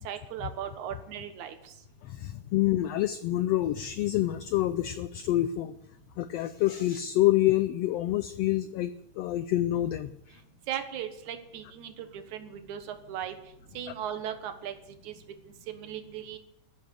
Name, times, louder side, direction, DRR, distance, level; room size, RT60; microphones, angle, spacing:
voice 1, 0.0-1.7 10.7-13.4 13.7-14.7 15.0-15.2 15.7-16.4, right 10 dB, 70° right, 8 dB, 2.7 m, -37 dB
voice 2, 2.0-5.7 6.2-10.4, left 14 dB, 85° left, 13 dB, 1.4 m, -27 dB
13.5 x 9.7 x 8.3 m, 0.81 s
omnidirectional pair, 3.6 m